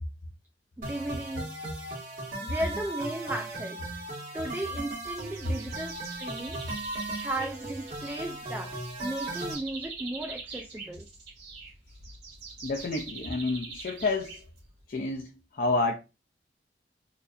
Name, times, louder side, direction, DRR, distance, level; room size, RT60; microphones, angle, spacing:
voice 1, 0.8-1.5 2.4-4.0 4.3-6.6 7.2-11.1, right 1 dB, 10° right, 0.3 m, -36 dB
sound 1, 0.8-9.5, right 2 dB, 50° right, 1.9 m, -37 dB
sound 2, 5.0-14.9, right 4 dB, 75° right, 1.9 m, -44 dB
voice 2, 12.6-14.5 14.9-16.0, left 3 dB, 50° left, 0.5 m, -29 dB
4.2 x 2.4 x 2.5 m
head